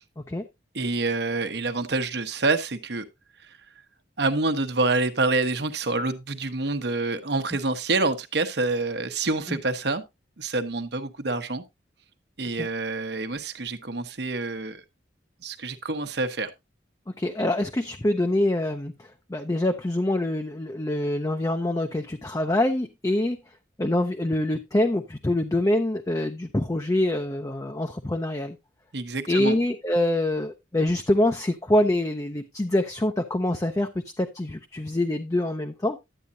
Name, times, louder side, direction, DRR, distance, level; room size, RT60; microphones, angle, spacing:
voice 1, 0.7-3.0 3.4-3.5 4.2-10.0 10.4-11.6 12.4-14.8 15.4-16.5 28.9-29.6, right 3 dB, 60° right, 1.0 m, -27 dB
voice 2, 17.1-28.6 29.3-36.0, left 1 dB, 20° left, 0.5 m, -25 dB
11.0 x 8.6 x 2.7 m
head